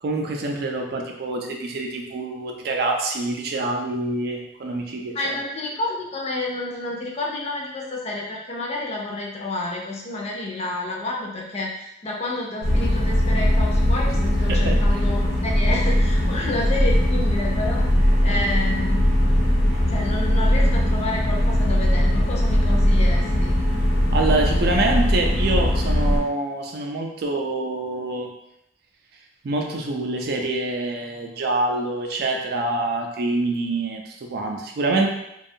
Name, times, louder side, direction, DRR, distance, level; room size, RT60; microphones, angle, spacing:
voice 1, 0.0-5.4 14.5-14.8 24.1-28.3 29.4-35.1, right 2 dB, 60° right, 2 dB, 0.4 m, -26 dB
voice 2, 5.1-19.1 19.9-23.6, left 2 dB, 35° left, -2 dB, 0.5 m, -30 dB
sound 1, 12.6-26.2, left 1 dB, 80° left, 1.0 m, -20 dB
2.5 x 2.2 x 2.7 m, 0.84 s
head